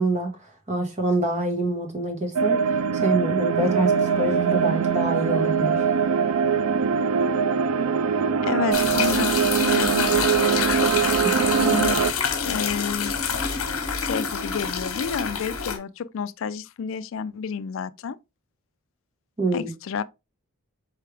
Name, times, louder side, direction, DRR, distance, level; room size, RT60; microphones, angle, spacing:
voice 1, 0.0-5.8 19.4-19.7, right 2 dB, 30° right, 1.3 m, -26 dB
sound 1, 2.3-12.1, right 6 dB, 85° right, 0.4 m, -22 dB
Bowed string instrument, 3.4-8.4, left 1 dB, 5° left, 1.2 m, -42 dB
voice 2, 8.4-11.3 11.6-12.0 12.4-13.2 14.0-18.2 19.5-20.0, left 6 dB, 60° left, 0.3 m, -30 dB
sound 2, 8.7-15.8, left 6 dB, 80° left, 1.0 m, -27 dB
4.7 x 3.3 x 3.3 m
head